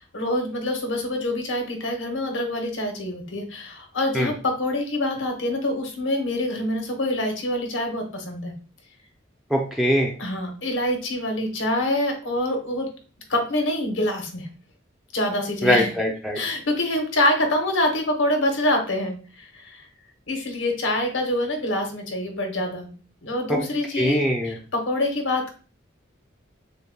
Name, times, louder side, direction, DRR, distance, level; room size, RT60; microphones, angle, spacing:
voice 1, 0.1-8.5 10.2-12.9 13.3-14.5 15.1-15.9 16.3-19.9 20.3-22.9 23.2-25.5, left 1 dB, 85° left, 4 dB, 1.0 m, -25 dB
voice 2, 9.5-10.1 15.6-16.4 23.5-23.6 24.0-24.5, equal, ahead, 0 dB, 0.5 m, -22 dB
6.5 x 2.2 x 2.2 m, 0.37 s
head